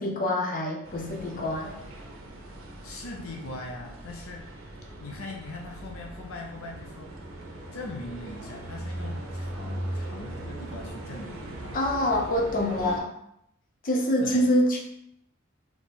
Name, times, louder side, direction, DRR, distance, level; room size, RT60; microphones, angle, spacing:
voice 1, 0.0-1.8 11.7-13.1 13.8-14.8, left 1 dB, 40° left, 0 dB, 0.8 m, -25 dB
sound 1, 0.8-13.0, right 1 dB, 85° right, 0.9 m, -39 dB
voice 2, 2.8-4.4 5.0-7.1 7.7-11.8 14.2-14.5, left 2 dB, 75° left, 0 dB, 0.7 m, -40 dB
3.6 x 3.1 x 4.0 m, 0.74 s
head